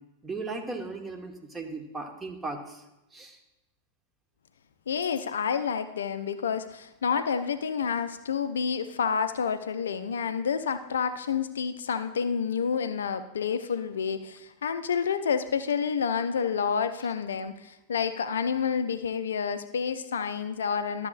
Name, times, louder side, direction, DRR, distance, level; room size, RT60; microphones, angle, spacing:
voice 1, 0.2-2.8 3.1-3.4, right 3 dB, 15° right, 3 dB, 1.2 m, -37 dB
voice 2, 4.9-21.1, left 6 dB, 65° left, 11 dB, 0.4 m, -29 dB
12.0 x 7.4 x 2.4 m, 0.95 s
figure-of-eight pair, 90°, 0 cm